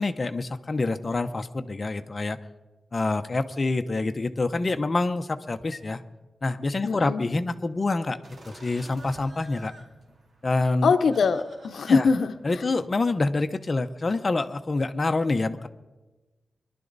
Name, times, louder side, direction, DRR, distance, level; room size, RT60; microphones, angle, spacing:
voice 1, 0.0-2.4 2.9-6.0 6.4-8.2 8.5-9.7 10.4-10.9 11.9-12.1 12.4-15.7, left 3 dB, 35° left, 8 dB, 0.8 m, -26 dB
voice 2, 6.8-7.2 10.8-12.3, left 5 dB, 80° left, 9 dB, 0.7 m, -22 dB
sound 1, 8.2-13.4, right 2 dB, 60° right, 2.5 m, -50 dB
24.0 x 11.5 x 4.0 m, 1.2 s
wide cardioid pair, 110°, 0 cm